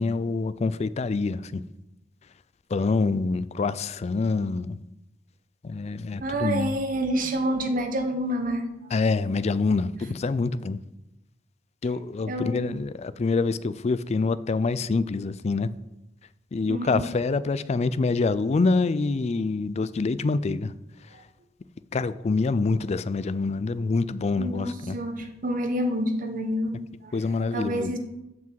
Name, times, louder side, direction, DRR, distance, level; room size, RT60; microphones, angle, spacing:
voice 1, 0.0-1.6 2.7-4.8 5.6-6.7 8.9-10.8 11.8-15.7 16.5-20.7 21.9-25.0 27.1-27.9, left 3 dB, 35° left, 0.4 m, -26 dB
voice 2, 6.2-8.7 12.3-12.6 16.7-17.0 24.4-26.7 27.0-27.1 27.5-28.0, equal, 50° right, 1.1 m, -28 dB
7.5 x 6.0 x 7.4 m
head